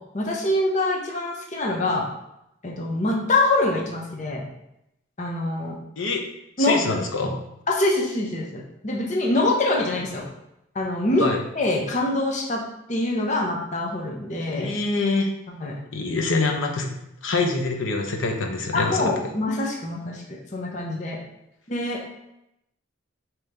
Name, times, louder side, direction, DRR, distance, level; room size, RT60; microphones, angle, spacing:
voice 1, 0.1-2.1 2.6-4.4 5.2-5.8 6.6-7.0 7.7-10.3 10.7-11.3 11.5-12.6 12.9-14.7 15.5-15.8 18.7-21.2 21.7-22.1, left 2 dB, 35° left, -1 dB, 0.7 m, -24 dB
voice 2, 6.6-7.4 11.2-11.4 14.5-15.3 15.9-16.9 17.2-19.1, left 3 dB, 70° left, 2 dB, 0.7 m, -25 dB
5.2 x 3.0 x 3.3 m, 0.83 s
head